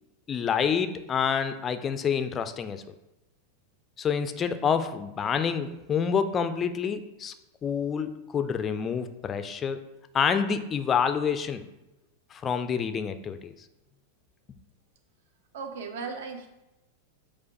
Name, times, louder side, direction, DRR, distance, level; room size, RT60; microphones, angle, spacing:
voice 1, 0.3-2.9 4.0-7.3 7.6-9.8 10.1-11.7 12.3-13.5, left 7 dB, 25° left, 9 dB, 0.3 m, -28 dB
voice 2, 15.5-16.5, right 5 dB, 55° right, 5 dB, 0.6 m, -36 dB
4.5 x 2.4 x 4.4 m, 0.94 s
figure-of-eight pair, 90°, 0 cm